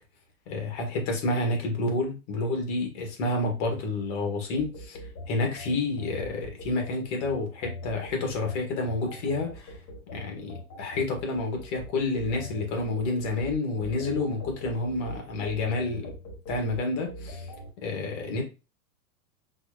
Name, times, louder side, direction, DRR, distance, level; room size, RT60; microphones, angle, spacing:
voice 1, 0.5-5.0 5.3-9.8 10.1-16.1 16.5-17.5 17.8-18.4, left 2 dB, 60° left, 3 dB, 1.7 m, -29 dB
sound 1, 4.5-17.7, left 1 dB, 40° left, 1.6 m, -42 dB
4.5 x 2.9 x 2.4 m, 0.29 s
supercardioid pair, 145°, 40 cm